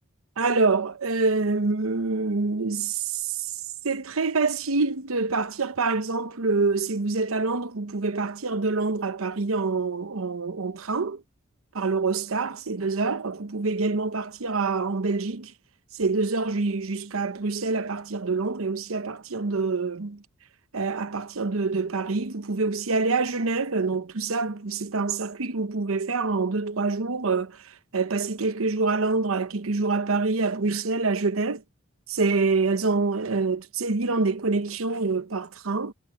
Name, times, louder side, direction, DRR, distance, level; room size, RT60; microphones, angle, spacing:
voice 1, 0.4-3.5 3.8-11.2 11.8-15.5 15.9-20.2 20.7-31.6 32.1-35.9, right 3 dB, 80° right, 0.9 m, -26 dB
head